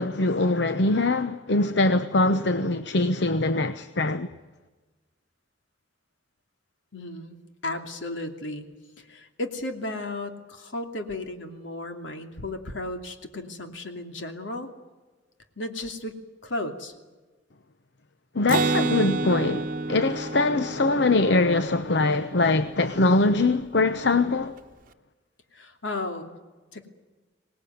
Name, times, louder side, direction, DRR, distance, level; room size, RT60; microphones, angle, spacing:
voice 1, 0.0-4.3 18.3-24.5, left 2 dB, 65° left, 0.9 m, -23 dB
voice 2, 6.9-7.4 7.6-8.7 9.0-14.7 15.6-16.9 25.5-26.3 26.7-26.9, left 2 dB, 80° left, 2.8 m, -34 dB
Acoustic guitar, 18.5-22.1, right 3 dB, 50° right, 1.0 m, -29 dB
25.0 x 19.0 x 9.4 m
head